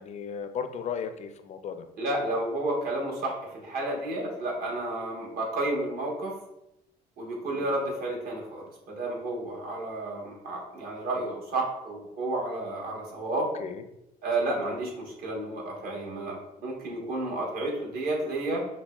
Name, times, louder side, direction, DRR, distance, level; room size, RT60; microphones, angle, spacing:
voice 1, 0.0-1.8 7.5-7.7 13.6-13.8 14.5-14.7, left 7 dB, 45° left, 9 dB, 0.4 m, -36 dB
voice 2, 2.0-6.4 7.2-13.5 14.2-18.7, right 2 dB, 60° right, -2 dB, 1.3 m, -31 dB
6.0 x 2.1 x 2.3 m, 0.88 s
cardioid pair, 110°, 17 cm